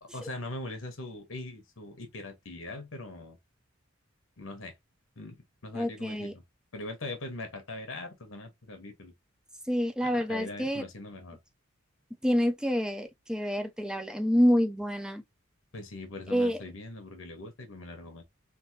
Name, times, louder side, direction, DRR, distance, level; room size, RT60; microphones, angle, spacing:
voice 1, 0.0-3.4 4.4-4.8 5.2-6.4 6.7-9.1 10.0-11.4 15.7-18.2, left 2 dB, 75° left, 1.1 m, -41 dB
voice 2, 5.7-6.3 9.7-10.8 12.2-15.2 16.3-16.6, equal, 5° right, 0.5 m, -27 dB
3.5 x 2.7 x 2.7 m
head